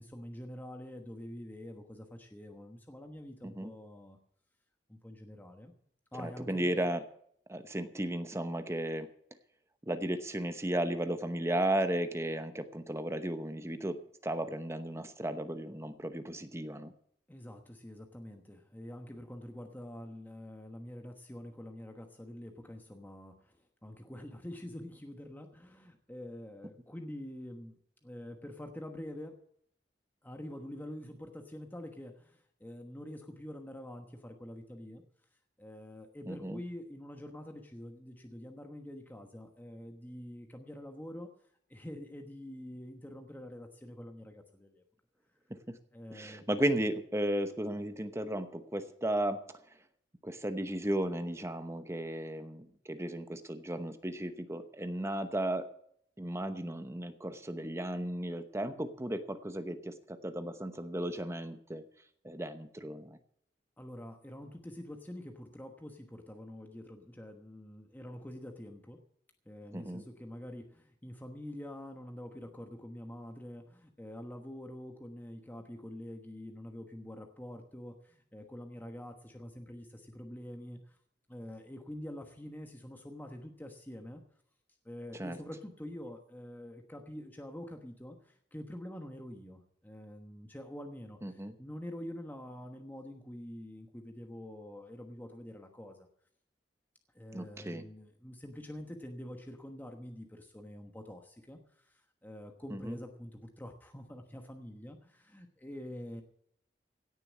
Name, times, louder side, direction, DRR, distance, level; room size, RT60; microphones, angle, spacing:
voice 1, 0.0-4.2 4.9-5.7 6.1-6.8 17.3-29.4 30.2-35.0 35.6-41.3 41.7-44.8 45.9-46.5 63.8-69.0 69.4-81.0 81.3-84.2 84.8-96.1 97.1-106.2, left 1 dB, 10° left, 4 dB, 1.2 m, -46 dB
voice 2, 6.2-7.0 7.5-9.1 9.8-16.9 36.3-36.6 45.5-45.8 46.1-49.4 50.2-55.7 56.2-61.8 62.2-63.2 69.7-70.0 85.1-85.4 91.2-91.5 97.3-97.8 102.7-103.0, right 1 dB, 15° right, 9 dB, 0.9 m, -35 dB
17.0 x 7.0 x 8.4 m, 0.68 s
head